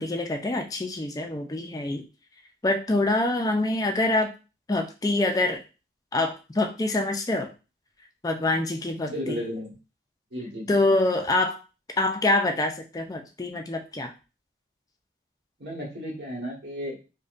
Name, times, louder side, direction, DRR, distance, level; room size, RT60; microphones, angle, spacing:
voice 1, 0.0-2.0 2.6-4.3 4.7-5.6 6.1-7.5 8.2-9.4 10.7-11.6 12.0-14.1, left 2 dB, 20° left, 4 dB, 0.4 m, -25 dB
voice 2, 9.1-9.7 10.3-10.9 15.6-17.0, equal, 75° right, -2 dB, 1.4 m, -34 dB
5.0 x 2.2 x 2.5 m, 0.32 s
head